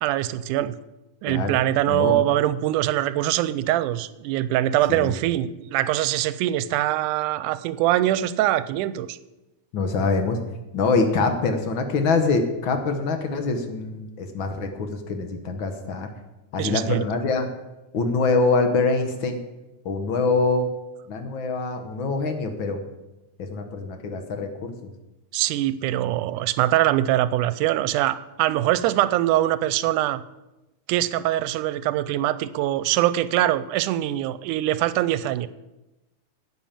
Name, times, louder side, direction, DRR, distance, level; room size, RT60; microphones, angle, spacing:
voice 1, 0.0-0.8 1.2-9.2 16.6-17.0 25.3-30.2 30.9-35.5, right 13 dB, 85° right, 15 dB, 2.1 m, -23 dB
voice 2, 1.9-2.2 4.9-5.1 9.7-10.4 10.7-16.1 16.5-17.5 17.9-19.4 19.8-20.7 21.1-22.8 23.4-24.9, left 4 dB, 55° left, 6 dB, 1.4 m, -24 dB
10.0 x 8.9 x 7.4 m, 1.0 s
omnidirectional pair, 3.5 m